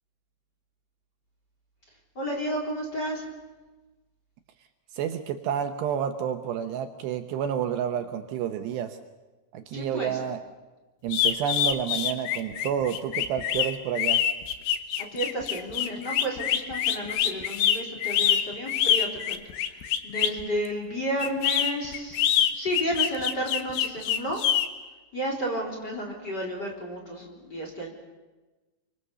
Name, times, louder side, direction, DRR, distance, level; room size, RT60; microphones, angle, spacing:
voice 1, 2.2-3.2 9.7-10.2 15.1-19.4 20.0-24.4 25.1-27.9, right 1 dB, 25° left, -1 dB, 4.0 m, -32 dB
voice 2, 4.9-9.0 9.5-10.4 11.0-14.2, right 9 dB, 75° right, 7 dB, 2.9 m, -29 dB
sound 1, 11.1-20.4 21.2-24.7, left 10 dB, 70° left, 3.2 m, -25 dB
27.5 x 24.5 x 6.9 m, 1.2 s
omnidirectional pair, 5.4 m